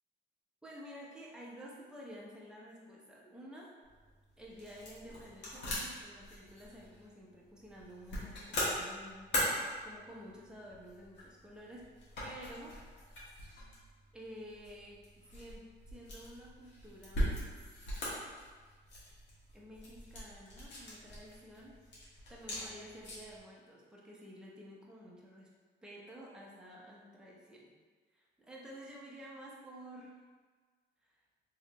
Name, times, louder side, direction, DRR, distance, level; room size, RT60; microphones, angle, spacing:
voice 1, 0.6-3.7 4.4-9.5 9.8-11.9 12.2-12.8 14.1-17.4 19.5-21.8 22.3-25.5 25.8-27.7 28.1-30.2, equal, 5° right, -4 dB, 0.7 m, -51 dB
sound 1, 3.8-23.4, equal, 65° left, 1.2 m, -41 dB
3.1 x 2.8 x 2.9 m, 1.4 s
cardioid pair, 90°, 20 cm